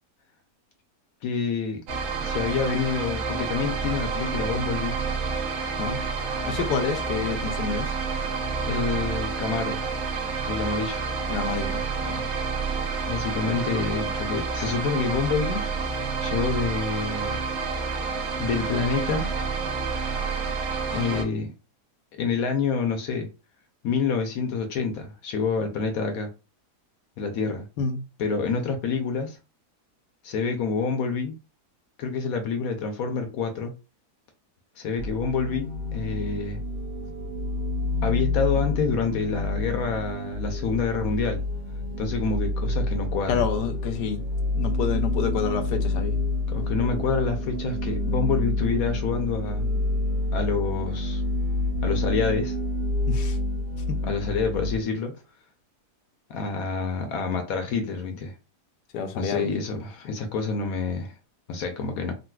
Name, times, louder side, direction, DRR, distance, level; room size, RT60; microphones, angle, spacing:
voice 1, 1.2-1.8 2.2-5.0 8.7-9.9 10.5-11.0 13.0-15.6 15.9-17.4 18.4-19.3 20.9-21.5 22.1-23.3 23.8-26.3 27.2-27.7 28.2-29.4 30.2-31.4 32.0-33.7 34.8-36.6 38.0-41.4 42.0-43.4 46.5-49.7 50.3-51.2 51.8-52.6 54.0-55.1 56.3-58.4 59.2-61.1 61.5-62.1, left 5 dB, 70° left, 1.0 m, -27 dB
sound 1, 1.9-21.2, right 4 dB, 60° right, 1.0 m, -29 dB
voice 2, 6.4-7.9 11.3-12.2 27.8-28.0 43.3-44.2 44.5-46.2 53.1-53.4 53.9-54.0 58.9-59.5 60.0-60.2, left 6 dB, 90° left, 1.2 m, -28 dB
sound 2, 35.0-54.8, left 2 dB, 10° right, 0.9 m, -28 dB
3.9 x 2.3 x 2.2 m
omnidirectional pair, 1.7 m